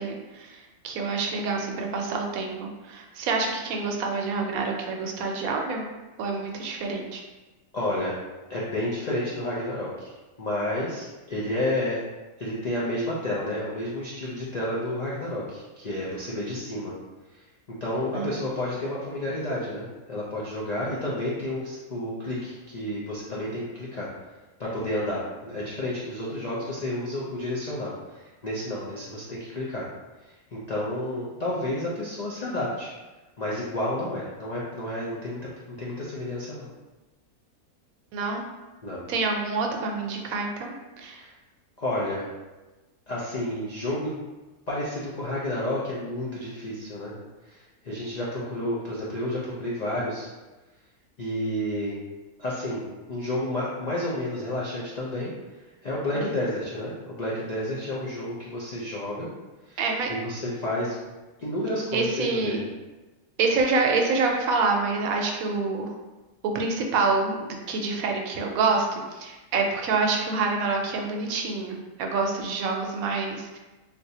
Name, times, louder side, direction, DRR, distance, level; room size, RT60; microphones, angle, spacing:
voice 1, 0.0-5.9 6.2-7.2 18.1-18.4 38.1-38.4 39.1-41.2 56.1-56.3 59.8-60.1 61.9-62.6 63.4-65.9 66.5-73.6, right 4 dB, 75° right, 2 dB, 1.0 m, -27 dB
voice 2, 7.7-8.1 8.5-10.1 10.4-12.0 12.4-16.9 17.7-24.1 24.6-29.9 30.5-32.9 33.4-35.5 35.8-36.7 38.8-39.0 41.1-41.3 41.8-42.2 43.1-44.2 44.7-47.1 47.4-47.6 47.8-50.3 51.2-52.0 52.4-55.3 55.8-59.3 59.7-59.8 60.1-61.0 61.4-62.7, left 1 dB, 85° left, -6 dB, 0.3 m, -30 dB
3.7 x 2.5 x 2.7 m, 1.1 s
omnidirectional pair, 1.5 m